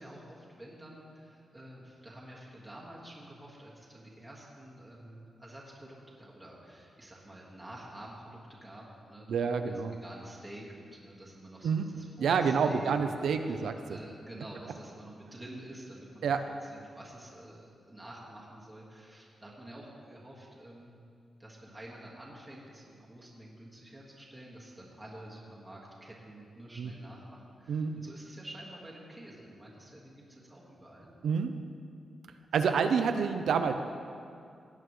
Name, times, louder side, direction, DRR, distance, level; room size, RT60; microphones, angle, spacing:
voice 1, 0.0-9.7 10.0-16.2 16.6-21.0 21.4-31.1, right 1 dB, 10° right, -5 dB, 1.6 m, -49 dB
voice 2, 9.3-10.0 11.6-11.9 12.2-14.0 16.2-16.4 26.8-26.9 27.7-28.0 31.2-31.5 32.5-33.7, right 6 dB, 80° right, 7 dB, 0.5 m, -28 dB
17.5 x 9.0 x 3.1 m, 2.3 s
wide cardioid pair, 175°, 0 cm